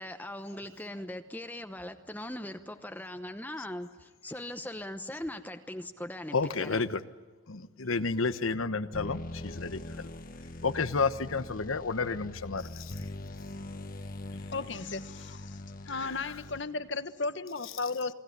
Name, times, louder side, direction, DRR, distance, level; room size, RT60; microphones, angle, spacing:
voice 1, 0.0-6.8, left 1 dB, 10° left, 7 dB, 0.9 m, -40 dB
voice 2, 6.3-7.0 7.5-10.1 10.6-13.1 15.9-16.2, left 4 dB, 90° left, 12 dB, 1.2 m, -31 dB
sound 1, 8.9-16.9, left 1 dB, 45° left, 1.2 m, -42 dB
voice 3, 14.3-15.6 15.9-18.1, left 3 dB, 60° left, 11 dB, 1.4 m, -35 dB
28.5 x 20.0 x 9.7 m, 1.3 s
head